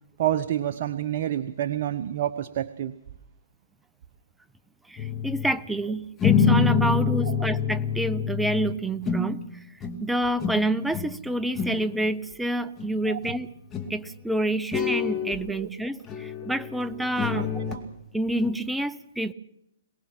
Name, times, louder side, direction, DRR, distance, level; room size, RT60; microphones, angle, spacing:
voice 1, 0.2-2.9 13.1-13.2 15.5-15.7 17.3-17.8, right 11 dB, 50° right, 11 dB, 0.9 m, -28 dB
voice 2, 4.9-9.4 10.0-13.5 13.9-17.5 18.1-19.3, right 1 dB, 5° right, 13 dB, 0.7 m, -28 dB
sound 1, 5.0-5.6 6.2-9.5 9.8-10.1 10.4-11.2 11.4-11.9 12.8-12.9 13.2-13.4 13.7-14.0 14.7-15.4 16.1-17.8 18.4-18.5, left 6 dB, 20° left, 2.5 m, -26 dB
23.0 x 19.0 x 5.9 m, 0.79 s
hypercardioid pair, 130°, 0 cm